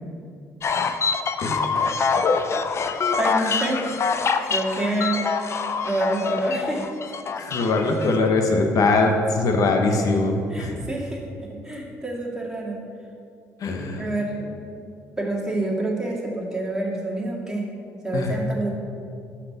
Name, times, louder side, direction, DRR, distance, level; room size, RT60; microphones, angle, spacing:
sound 1, 0.6-8.2, left 5 dB, 45° left, 0.5 m, -25 dB
voice 1, 1.4-1.7 7.4-10.7 13.6-14.1 18.1-18.3, left 3 dB, 65° left, 4 dB, 1.1 m, -22 dB
voice 2, 3.2-3.9 4.5-5.5 5.8-6.8 10.5-12.8 14.0-14.6 15.2-17.7 18.0-18.7, right 1 dB, 10° right, -4 dB, 2.0 m, -27 dB
6.0 x 5.8 x 6.7 m, 2.5 s
supercardioid pair, 75°, 6 cm